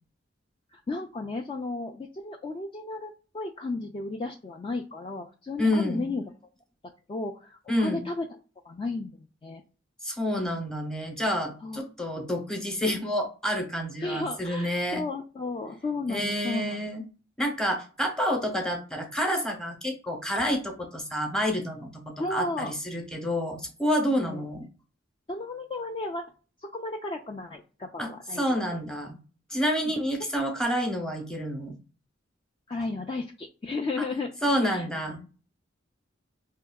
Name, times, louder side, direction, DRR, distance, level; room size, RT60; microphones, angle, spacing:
voice 1, 0.7-6.2 7.1-8.3 8.6-9.1 9.4-9.6 11.6-11.8 14.0-16.9 22.2-22.7 24.1-24.4 25.3-26.3 26.6-28.6 32.7-34.9 35.2-35.3, left 3 dB, 25° left, 2 dB, 0.3 m, -34 dB
voice 2, 5.6-6.1 7.7-8.0 10.0-15.0 16.1-17.0 17.4-24.7 28.0-29.2 29.5-31.8 34.0-34.1 34.4-35.2, equal, 5° left, 2 dB, 0.8 m, -28 dB
4.3 x 2.8 x 2.2 m, 0.35 s
head